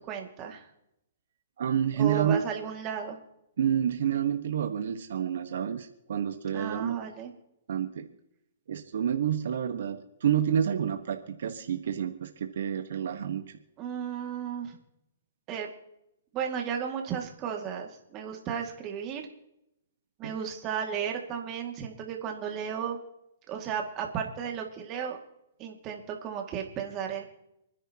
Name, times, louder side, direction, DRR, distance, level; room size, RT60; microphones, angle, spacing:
voice 1, 0.1-0.7 2.0-3.2 6.5-7.3 13.8-14.8 15.5-15.7 16.3-19.2 20.2-23.0 23.5-25.2 25.6-27.2, right 7 dB, 25° right, 2 dB, 2.2 m, -34 dB
voice 2, 1.6-2.4 3.6-6.9 7.7-8.0 8.7-13.4 20.2-20.3, right 9 dB, 70° right, 6 dB, 1.3 m, -29 dB
28.5 x 10.0 x 2.9 m, 0.83 s
hypercardioid pair, 150°, 0 cm